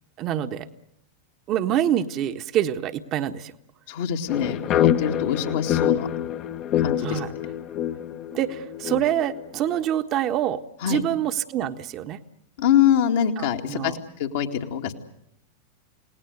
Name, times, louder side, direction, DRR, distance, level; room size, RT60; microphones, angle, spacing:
voice 1, 0.2-0.7 1.5-3.5 7.0-7.3 8.3-10.6 10.9-12.2 13.4-14.0, right 11 dB, 35° right, 9 dB, 1.4 m, -26 dB
voice 2, 3.9-6.1 6.8-7.2 10.8-11.0 12.6-13.9 14.2-14.9, left 9 dB, 55° left, 2 dB, 2.2 m, -24 dB
sound 1, 4.3-9.7, left 10 dB, 35° left, 1.3 m, -26 dB
29.5 x 19.0 x 8.2 m, 0.76 s
figure-of-eight pair, 90°, 0 cm